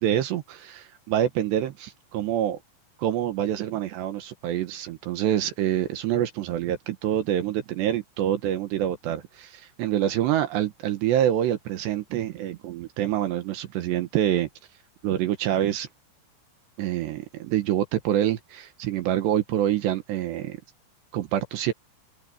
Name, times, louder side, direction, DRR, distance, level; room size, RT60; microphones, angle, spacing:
voice 1, 0.0-2.6 3.0-14.5 15.0-15.9 16.8-20.6 21.1-21.7, right 11 dB, 70° right, 3.1 m, -26 dB
open air
omnidirectional pair, 5.8 m